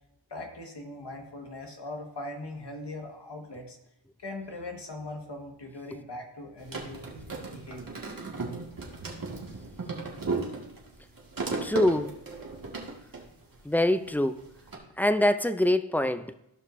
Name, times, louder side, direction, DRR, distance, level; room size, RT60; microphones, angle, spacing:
voice 1, 0.3-3.8 4.2-7.1 7.5-8.0, left 2 dB, 55° left, 2 dB, 1.8 m, -40 dB
sound 1, 6.6-14.1 14.4-14.8, right 3 dB, 45° right, 2.1 m, -36 dB
voice 2, 11.6-12.2 13.6-14.4 15.0-16.3, left 1 dB, 5° left, 10 dB, 0.4 m, -24 dB
15.5 x 5.3 x 2.7 m, 0.84 s
cardioid pair, 60°, 48 cm